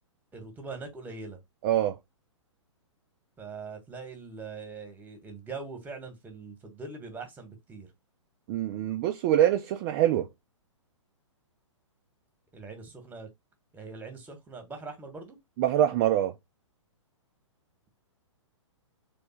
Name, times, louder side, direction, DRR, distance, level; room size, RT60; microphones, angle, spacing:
voice 1, 0.3-1.4 3.4-7.9 12.5-13.3 13.7-15.4, right 4 dB, 10° right, 1.4 m, -42 dB
voice 2, 1.6-2.0 8.5-10.3 15.6-16.3, right 12 dB, 35° right, 0.6 m, -24 dB
3.5 x 3.4 x 4.3 m
figure-of-eight pair, 120°, 16 cm